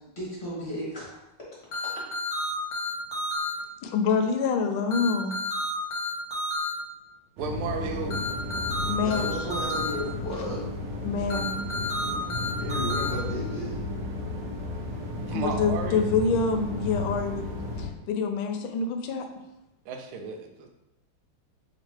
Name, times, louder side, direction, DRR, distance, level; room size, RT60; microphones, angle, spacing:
voice 1, 0.2-1.0 9.0-10.6 12.6-13.7, equal, 35° left, -6 dB, 1.3 m, -33 dB
sound 1, 1.7-3.5 4.9-6.7 8.1-9.9 11.3-13.1, left 2 dB, 50° left, 1.3 m, -30 dB
voice 2, 3.8-5.4 8.9-9.4 11.0-11.5 15.3-17.4 17.8-19.3, left 5 dB, 80° left, 5 dB, 1.3 m, -26 dB
sound 2, 7.4-17.9, left 2 dB, 65° right, 1.2 m, -33 dB
voice 3, 7.4-8.2 15.2-16.1 19.9-20.7, right 4 dB, 85° right, 4 dB, 1.5 m, -33 dB
3.4 x 2.9 x 4.5 m, 0.93 s
omnidirectional pair, 2.3 m